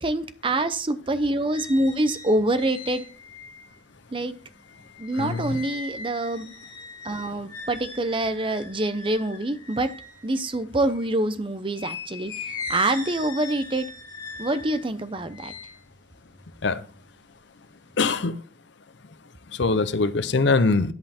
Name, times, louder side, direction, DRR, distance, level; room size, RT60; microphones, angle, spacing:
voice 1, 0.0-3.0 4.1-4.3 5.0-6.5 7.0-9.9 10.2-13.9 14.4-15.5, right 1 dB, 25° right, 0.7 m, -26 dB
sound 1, 1.0-11.2 11.7-17.2 17.6-18.2, left 4 dB, 20° left, 3.3 m, -40 dB
voice 2, 5.1-5.6 16.6-16.9 18.0-18.4 19.5-20.9, left 3 dB, 60° left, 0.6 m, -23 dB
10.5 x 5.6 x 4.3 m
head